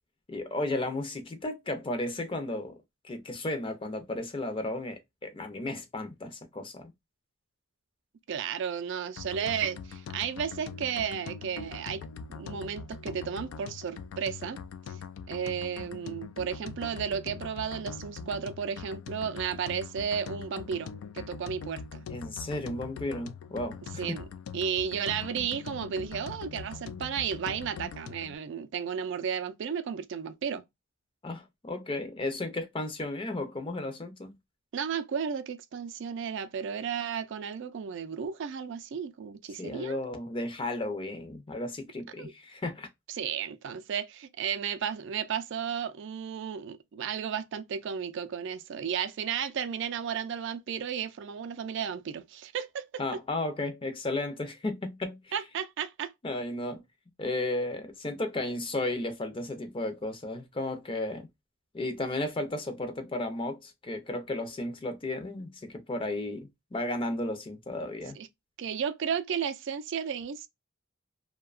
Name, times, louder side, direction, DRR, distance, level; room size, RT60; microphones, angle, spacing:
voice 1, 0.3-2.8 3.0-6.9 22.1-24.2 31.2-34.4 39.6-42.9 53.0-55.3 56.2-56.8 57.2-61.3 61.7-68.2, left 2 dB, 25° left, 0.5 m, -34 dB
voice 2, 8.3-12.0 12.3-14.6 15.3-22.0 24.0-24.2 24.5-30.6 34.7-40.0 42.2-42.3 43.1-52.9 55.3-56.1 68.2-68.3 68.6-70.5, right 7 dB, 60° right, 0.4 m, -33 dB
sound 1, 9.2-28.4, left 6 dB, 85° left, 0.3 m, -42 dB
2.7 x 2.2 x 2.3 m
head